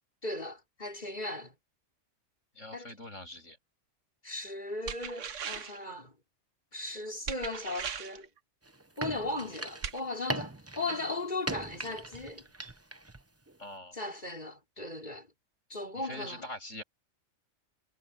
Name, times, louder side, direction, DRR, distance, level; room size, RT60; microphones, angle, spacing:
voice 1, 0.2-1.5 2.7-2.9 4.2-6.1 6.7-8.3 9.0-12.5 13.9-15.3 15.7-16.5, left 2 dB, 40° left, 5.7 m, -37 dB
voice 2, 2.5-3.6 13.6-14.0 15.9-16.8, left 1 dB, 90° left, 8.2 m, -43 dB
sound 1, 4.9-5.8 7.3-8.3 9.8-10.0, right 7 dB, 80° right, 1.4 m, -38 dB
sound 2, 8.6-13.2 13.5-13.6, right 2 dB, 15° right, 0.8 m, -39 dB
omnidirectional pair, 1.3 m